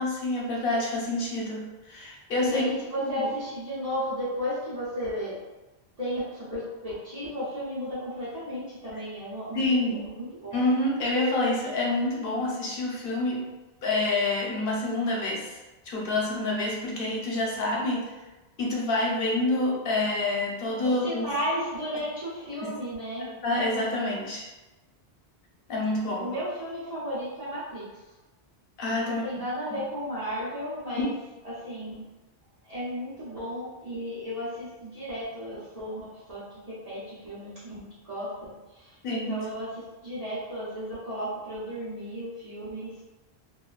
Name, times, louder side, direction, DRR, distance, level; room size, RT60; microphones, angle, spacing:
voice 1, 0.0-2.8 3.2-3.3 9.5-10.1 10.5-13.5 13.8-18.1 18.6-21.3 22.6-22.7 23.4-24.5 25.7-26.3 28.8-29.2 29.7-29.8 31.0-31.1 39.0-39.4, left 2 dB, 60° left, -3 dB, 0.8 m, -27 dB
voice 2, 2.4-5.4 6.0-10.6 20.8-23.3 26.2-27.8 29.0-31.1 31.4-32.0 32.6-43.0, equal, 40° right, -12 dB, 1.0 m, -34 dB
3.0 x 2.3 x 2.4 m, 1.1 s
omnidirectional pair, 1.1 m